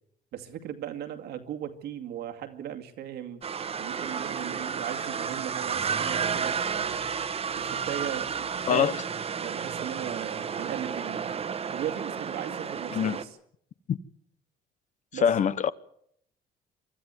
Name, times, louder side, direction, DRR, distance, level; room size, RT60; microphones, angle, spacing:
voice 1, 0.3-3.4 3.8-7.0 7.6-9.0 9.4-11.4 11.7-13.4 15.1-15.3, right 10 dB, 75° right, 2.2 m, -37 dB
sound 1, 3.4-13.2, right 6 dB, 35° right, 1.3 m, -32 dB
voice 2, 15.2-15.7, left 8 dB, 45° left, 0.9 m, -23 dB
24.0 x 13.0 x 9.6 m
cardioid pair, 110°, 17 cm